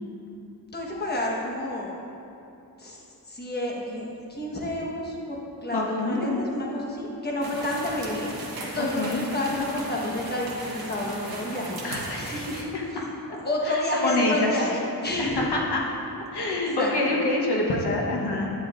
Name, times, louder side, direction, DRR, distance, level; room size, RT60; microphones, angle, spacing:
voice 1, 0.7-1.9 2.8-3.0 3.3-8.3 8.6-12.5 12.9-15.4 16.5-17.2, left 1 dB, 25° left, -3 dB, 1.3 m, -30 dB
voice 2, 5.7-6.4 8.8-9.4 11.8-13.0 13.6-14.7 15.2-15.8 16.3-18.5, left 2 dB, 75° left, -2 dB, 1.1 m, -27 dB
sound 1, 7.4-12.6, right 2 dB, 60° right, 1.3 m, -37 dB
11.0 x 9.2 x 2.5 m, 2.7 s
wide cardioid pair, 115°, 40 cm